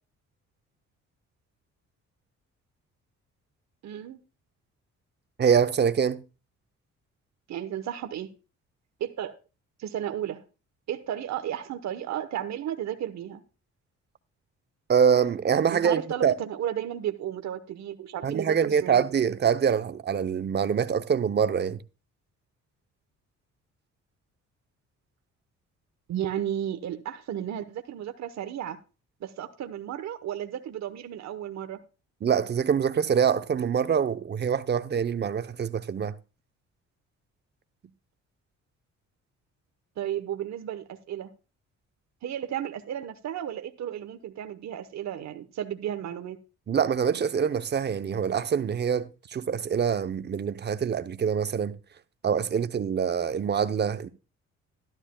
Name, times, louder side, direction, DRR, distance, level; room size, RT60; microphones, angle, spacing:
voice 1, 3.8-4.2 7.5-8.3 9.0-9.4 9.8-10.4 10.9-13.4 15.7-19.0 26.1-28.8 29.2-31.8 40.0-41.3 42.2-46.4, right 10 dB, 65° right, 1.0 m, -33 dB
voice 2, 5.4-6.2 14.9-16.3 18.2-21.8 32.2-36.1 46.7-51.8 52.2-54.1, right 7 dB, 35° right, 0.7 m, -25 dB
12.5 x 12.0 x 2.2 m
cardioid pair, 90°, 30 cm